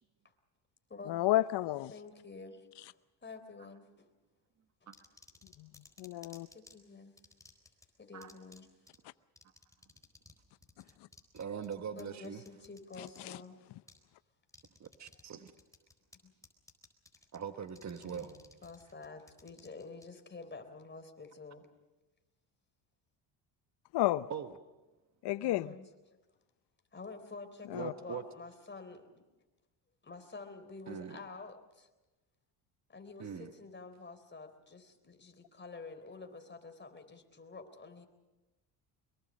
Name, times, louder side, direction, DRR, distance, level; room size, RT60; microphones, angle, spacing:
voice 1, 1.1-1.9 6.0-6.5 13.2-13.4 23.9-24.3 25.2-25.7 27.7-27.9, left 16 dB, 60° left, 0.8 m, -31 dB
voice 2, 1.9-4.1 6.5-7.1 8.0-8.7 12.0-13.6 16.2-16.3 18.0-21.7 25.4-25.9 26.9-29.2 30.0-31.9 32.9-38.1, left 3 dB, 25° left, 3.7 m, -49 dB
sound 1, 4.9-6.7 7.2-7.9 8.2-8.6 8.9-9.0 9.4-10.4 10.6-13.3 13.9-14.0 14.5-15.2 15.5-16.2 16.4-17.4 17.7-20.1, left 2 dB, 5° left, 4.2 m, -57 dB
voice 3, 11.3-12.4 14.8-15.5 17.3-18.3 24.3-24.6 27.7-28.2 30.9-31.2 33.2-33.5, right 7 dB, 35° right, 1.4 m, -42 dB
24.0 x 22.5 x 6.4 m
supercardioid pair, 80°, 46 cm